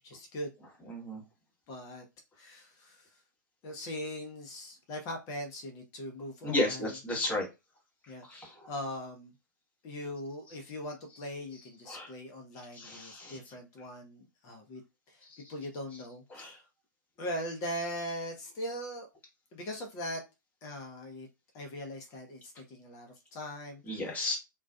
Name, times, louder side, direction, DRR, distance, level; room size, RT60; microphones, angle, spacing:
voice 1, 0.0-0.5 1.7-2.0 2.4-3.1 3.6-6.9 8.1-8.4 8.7-9.3 9.8-14.8 15.1-15.2 15.5-16.6 17.2-19.1 19.5-20.2 20.6-21.3 21.5-24.0, equal, 30° left, 0.8 m, -40 dB
voice 2, 0.8-1.2 6.4-7.5 8.3-8.7 11.9-12.1 12.7-13.4 15.3-15.5 16.3-16.6 23.9-24.4, left 2 dB, 15° left, 1.1 m, -33 dB
2.3 x 2.3 x 2.3 m
figure-of-eight pair, 110°, 11 cm